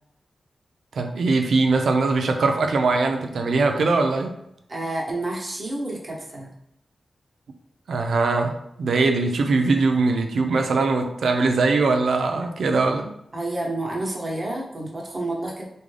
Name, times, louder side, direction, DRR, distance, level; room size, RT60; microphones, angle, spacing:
voice 1, 0.9-4.3 7.9-13.1, right 3 dB, 85° right, 4 dB, 0.4 m, -21 dB
voice 2, 4.7-6.5 12.3-12.5 13.3-15.6, right 2 dB, 30° right, -3 dB, 0.9 m, -29 dB
3.7 x 2.2 x 3.2 m, 0.77 s
wide cardioid pair, 115°, 0 cm